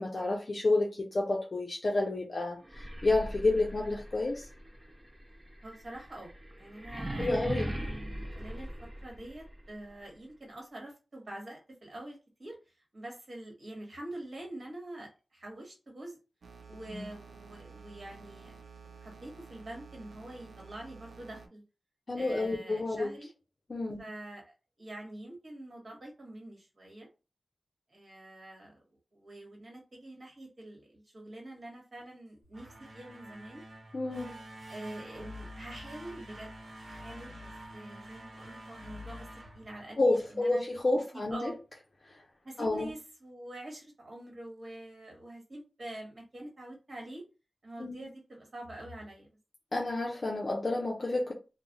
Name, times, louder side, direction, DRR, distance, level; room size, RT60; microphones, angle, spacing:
voice 1, 0.0-4.5 7.2-7.7 16.9-17.1 22.1-23.1 23.7-24.0 33.9-34.4 40.0-41.5 42.1-42.2 42.6-42.9 47.8-48.0 49.7-51.3, left 2 dB, 45° left, 0.5 m, -30 dB
sound 1, 2.6-9.5, right 1 dB, 25° right, 0.5 m, -39 dB
voice 2, 5.6-6.3 6.6-8.7 9.0-16.2 16.7-18.6 19.0-21.6 22.1-23.3 24.0-27.1 27.9-28.8 29.1-32.7 32.9-33.6 34.7-36.5 36.8-39.2 39.5-40.6 41.3-41.5 42.4-47.2 47.6-49.4, right 1 dB, 50° right, 1.3 m, -45 dB
sound 2, 16.4-21.5, right 5 dB, 90° right, 0.4 m, -51 dB
sound 3, 32.4-40.4, equal, 70° right, 0.9 m, -47 dB
2.3 x 2.1 x 3.8 m
wide cardioid pair, 115°, 0 cm